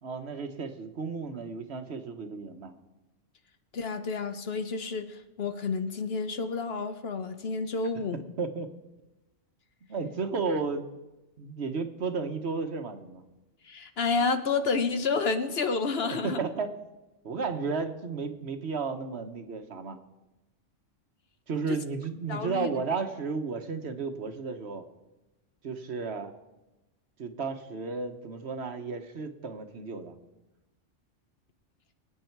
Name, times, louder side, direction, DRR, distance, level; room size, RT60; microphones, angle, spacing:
voice 1, 0.0-2.7 8.4-8.7 9.9-10.9 11.4-13.2 16.1-16.7 17.2-20.0 21.5-24.9 25.6-26.3 27.2-30.1, right 4 dB, 60° right, 7 dB, 1.3 m, -33 dB
voice 2, 3.7-8.2 13.6-16.4 21.7-21.8 22.3-22.8, left 4 dB, 55° left, 9 dB, 1.0 m, -30 dB
24.5 x 8.9 x 4.6 m, 1.0 s
omnidirectional pair, 1.3 m